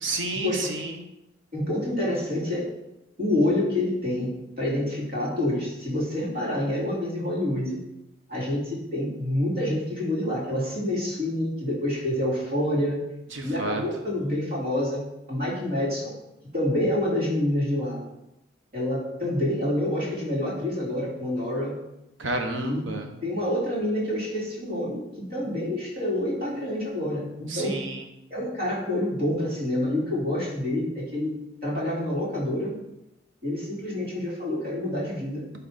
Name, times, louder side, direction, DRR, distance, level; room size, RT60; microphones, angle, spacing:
voice 1, 0.0-1.0 13.3-13.8 22.2-23.1 27.5-28.0, right 2 dB, 85° right, 4 dB, 1.2 m, -30 dB
voice 2, 1.5-2.8 3.2-7.8 8.3-13.0 13.4-16.1 16.5-18.0 18.7-21.8 22.5-22.8 23.2-27.8 28.3-31.3 31.6-32.8 33.4-35.4, left 1 dB, 50° right, -5 dB, 3.1 m, -27 dB
11.0 x 4.2 x 4.2 m, 0.88 s
head